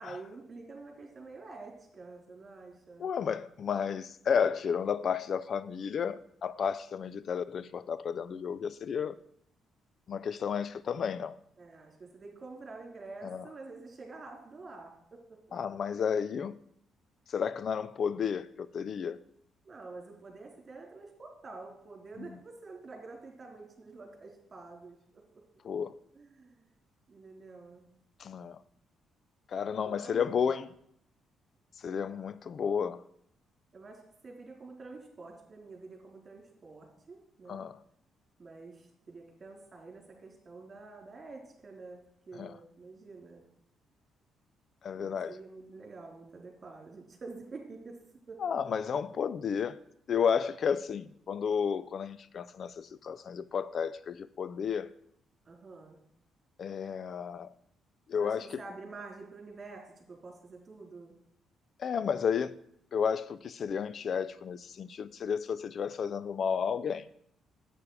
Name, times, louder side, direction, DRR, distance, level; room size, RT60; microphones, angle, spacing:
voice 1, 0.0-3.1 11.6-15.6 19.6-25.4 26.1-26.7 27.1-27.9 29.8-30.5 33.7-37.6 38.4-43.4 45.0-48.0 48.3-48.4 55.5-56.0 58.2-61.2, right 3 dB, 35° right, 3.6 m, -48 dB
voice 2, 3.0-9.2 10.1-11.4 13.2-13.5 15.5-16.6 17.3-19.2 22.2-22.3 25.6-26.0 28.2-28.6 29.5-30.7 31.8-33.0 37.5-37.8 42.3-42.6 44.8-45.4 48.4-49.8 50.1-54.9 56.6-57.5 58.1-58.6 61.8-62.6 62.9-67.1, left 7 dB, 55° left, 0.4 m, -32 dB
10.5 x 8.4 x 4.8 m
cardioid pair, 90°, 0 cm